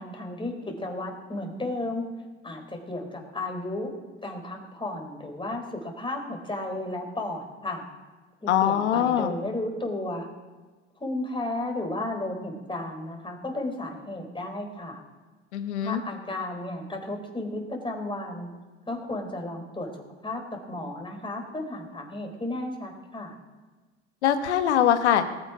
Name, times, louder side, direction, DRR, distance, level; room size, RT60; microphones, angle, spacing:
voice 1, 0.0-2.0 2.4-3.9 4.2-7.8 8.4-10.3 11.0-15.0 15.8-18.5 18.9-20.4 20.7-23.4, left 2 dB, 15° left, 2 dB, 4.3 m, -33 dB
voice 2, 8.5-9.3 15.5-16.0 24.2-25.2, left 10 dB, 85° left, 9 dB, 1.3 m, -22 dB
19.5 x 7.7 x 5.1 m, 1.3 s
hypercardioid pair, 75°, 33 cm